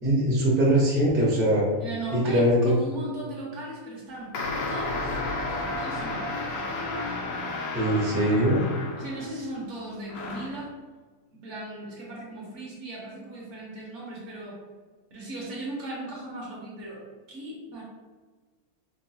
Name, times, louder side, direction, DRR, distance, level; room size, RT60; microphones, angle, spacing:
voice 1, 0.0-1.6 2.1-2.7 7.7-8.6, right 1 dB, 15° right, -6 dB, 0.4 m, -22 dB
voice 2, 1.8-4.4 4.7-5.1 5.8-6.4 9.0-10.8 11.3-14.6 15.1-17.0 17.3-17.8, right 1 dB, 60° right, -4 dB, 0.9 m, -37 dB
sound 1, 4.3-9.4 10.1-10.6, left 2 dB, 70° left, 0.9 m, -32 dB
3.7 x 2.0 x 2.7 m, 1.4 s
omnidirectional pair, 1.6 m